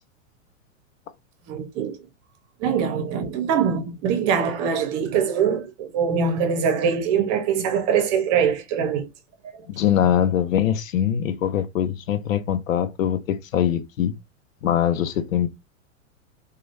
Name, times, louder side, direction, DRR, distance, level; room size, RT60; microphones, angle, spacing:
voice 1, 1.5-2.0 2.6-9.1 9.4-9.5, right 7 dB, 40° right, 0.9 m, -23 dB
voice 2, 9.7-14.1 14.6-15.5, left 10 dB, 85° left, 0.6 m, -22 dB
3.0 x 2.4 x 2.6 m
hypercardioid pair, 110°, 39 cm